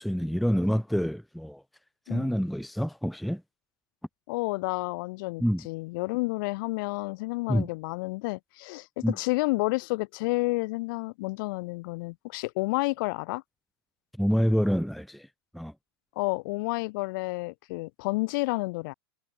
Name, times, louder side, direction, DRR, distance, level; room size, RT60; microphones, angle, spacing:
voice 1, 0.0-1.6 2.1-3.4 5.4-5.7 7.5-7.7 9.0-9.1 14.2-15.3 15.5-15.7, equal, ahead, 0.7 m, -27 dB
voice 2, 4.3-13.4 16.2-18.9, left 24 dB, 55° left, 1.7 m, -30 dB
hypercardioid pair, 105°, 13 cm